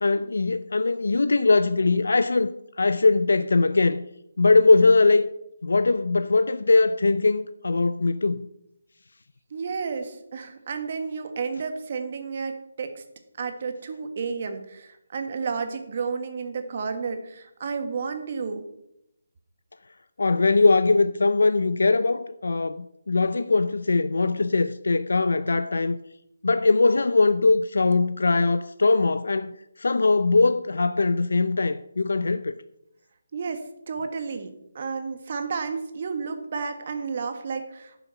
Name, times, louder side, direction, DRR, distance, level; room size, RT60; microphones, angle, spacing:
voice 1, 0.0-4.0 4.4-5.3 5.6-8.4 20.2-26.0 26.4-32.6, left 3 dB, 80° left, 0.5 m, -21 dB
voice 2, 9.5-13.0 13.4-18.7 33.3-38.0, right 5 dB, 40° right, 1.5 m, -32 dB
12.0 x 7.0 x 5.8 m
hypercardioid pair, 165°, 0 cm